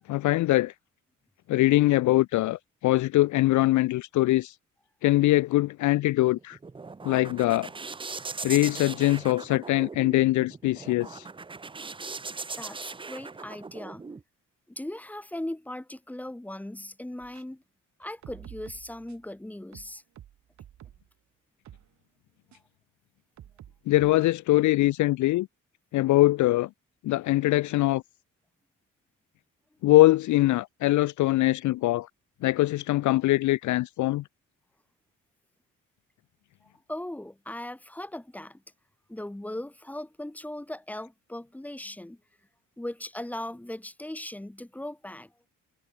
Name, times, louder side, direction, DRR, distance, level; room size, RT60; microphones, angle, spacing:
voice 1, 0.1-0.7 1.5-4.5 5.0-6.6 7.0-7.7 8.4-11.3 23.9-25.5 25.9-26.7 27.0-28.0 29.8-32.1 32.4-34.2, left 17 dB, 65° left, 0.4 m, -22 dB
sound 1, 6.3-14.2, right 4 dB, 15° right, 0.8 m, -39 dB
voice 2, 12.6-14.0 14.7-17.6 18.0-20.0 36.6-38.6 39.1-42.2 42.8-45.3, left 1 dB, 5° left, 2.4 m, -38 dB
sound 2, 17.2-17.4 18.0-19.3 19.7-21.1 21.6-21.9 22.5-22.6 23.4-24.3, right 11 dB, 60° right, 2.4 m, -49 dB
cardioid pair, 150°, 32 cm